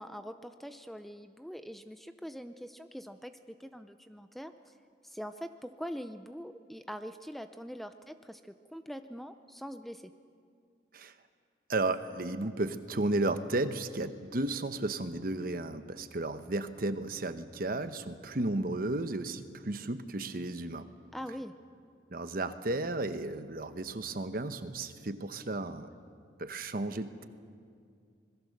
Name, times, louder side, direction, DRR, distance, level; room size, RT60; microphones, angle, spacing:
voice 1, 0.0-3.3 3.6-4.7 5.0-10.1 21.1-21.5, equal, ahead, 9 dB, 0.5 m, -43 dB
voice 2, 11.7-20.9 22.1-25.9 26.4-27.3, right 2 dB, 50° right, 10 dB, 1.0 m, -33 dB
26.0 x 21.0 x 6.6 m, 2.3 s
head